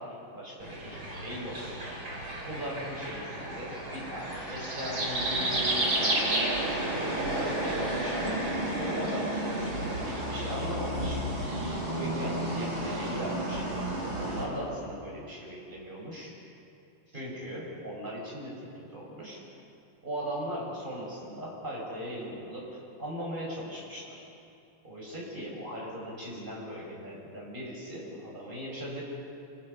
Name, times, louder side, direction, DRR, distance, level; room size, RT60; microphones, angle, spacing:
voice 1, 0.0-1.7 2.4-6.6 7.2-8.4 8.7-11.2 11.9-13.7 14.1-16.3 17.1-19.4 20.0-24.2 24.8-29.0, equal, 25° right, -4 dB, 6.6 m, -38 dB
sound 1, 0.6-14.5, right 1 dB, 90° right, 5.4 m, -32 dB
28.5 x 20.0 x 5.8 m, 2.5 s
omnidirectional pair, 2.2 m